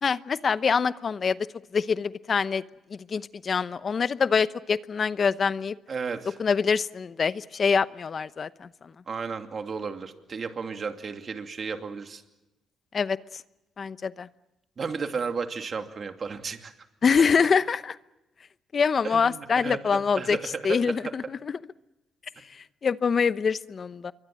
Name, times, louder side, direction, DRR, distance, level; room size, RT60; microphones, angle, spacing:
voice 1, 0.0-1.4 1.7-2.6 2.9-5.7 6.4-8.7 12.9-13.2 13.8-14.3 17.0-18.0 18.7-20.4 20.6-21.6 22.8-24.1, left 6 dB, 45° left, 15 dB, 0.8 m, -25 dB
voice 2, 5.9-6.4 9.1-12.2 14.8-16.7 19.0-20.4 20.7-20.9, right 5 dB, 45° right, 6 dB, 2.6 m, -33 dB
26.5 x 23.5 x 7.6 m, 0.98 s
cardioid pair, 90°, 0 cm